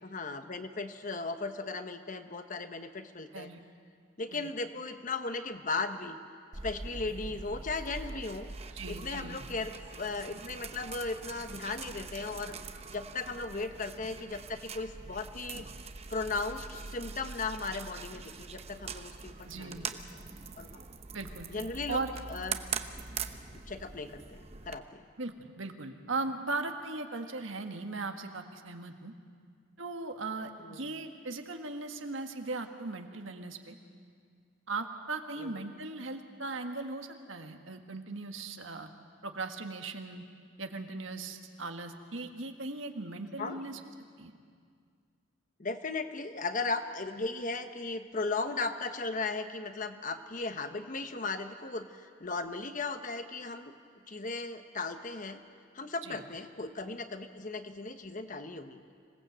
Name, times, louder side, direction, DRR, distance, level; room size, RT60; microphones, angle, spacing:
voice 1, 0.0-3.5 4.2-6.2 6.6-8.5 8.9-12.6 12.9-15.7 16.1-19.9 20.1-20.2 20.6-20.7 21.5-22.0 22.3-22.6 23.5-25.1 30.6-30.8 35.4-35.7 43.4-43.6 45.6-53.7 54.1-55.4 55.7-58.8, left 3 dB, 40° left, 8 dB, 1.1 m, -37 dB
sound 1, 6.5-24.8, right 5 dB, 30° right, 0.8 m, -43 dB
voice 2, 8.7-9.4 19.4-19.9 21.1-21.5 21.9-22.1 25.2-29.1 29.8-33.7 34.7-38.9 39.2-40.2 40.6-43.8 44.2-44.4 56.0-56.2, right 3 dB, 70° right, 5 dB, 1.7 m, -38 dB
26.0 x 18.0 x 8.1 m, 2.1 s
head